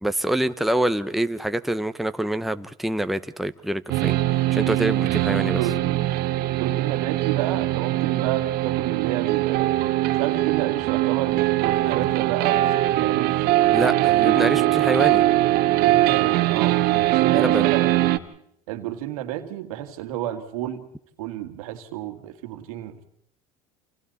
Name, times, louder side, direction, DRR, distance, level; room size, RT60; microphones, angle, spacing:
voice 1, 0.0-4.2 4.5-5.6 13.7-15.2 17.3-17.7, right 1 dB, ahead, 9 dB, 0.9 m, -26 dB
sound 1, 3.9-18.2, right 15 dB, 65° right, 1.4 m, -21 dB
voice 2, 5.5-6.0 6.6-13.5 14.0-14.7 15.8-18.1 18.7-20.9 21.2-23.0, right 12 dB, 85° right, 7 dB, 2.2 m, -31 dB
28.5 x 27.5 x 4.2 m, 0.69 s
supercardioid pair, 95°, 18 cm